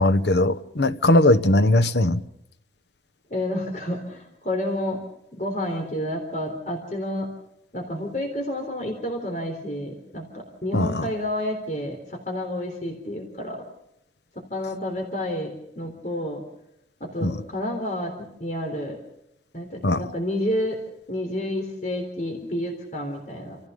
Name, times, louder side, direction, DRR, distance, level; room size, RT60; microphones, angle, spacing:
voice 1, 0.0-2.2 10.7-11.1 17.2-17.4 19.8-20.0, left 1 dB, 80° left, 1.0 m, -19 dB
voice 2, 3.3-5.0 5.3-7.3 7.7-13.6 14.3-16.4 17.0-19.0 19.5-20.8 21.1-23.6, left 1 dB, 45° left, 3.7 m, -30 dB
29.0 x 16.0 x 6.8 m
head